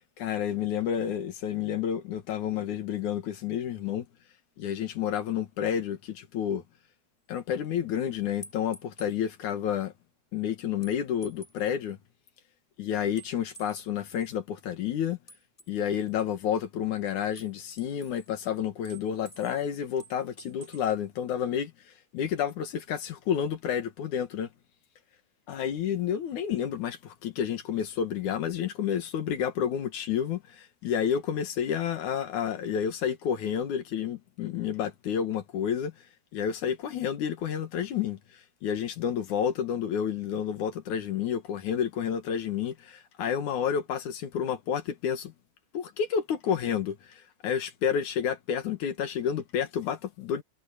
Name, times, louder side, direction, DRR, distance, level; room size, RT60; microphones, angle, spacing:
voice 1, 0.2-4.1 4.6-6.6 7.3-9.9 10.3-12.0 12.8-15.2 15.7-21.7 22.1-24.5 25.5-35.9 36.3-38.2 38.6-45.3 45.7-50.4, left 8 dB, 60° left, 2.5 m, -30 dB
sound 1, 8.4-9.2 10.8-11.7 13.2-14.4 15.3-16.2 17.3-18.4 18.8-19.6 20.0-20.9, right 1 dB, 10° left, 6.3 m, -50 dB
omnidirectional pair, 4.7 m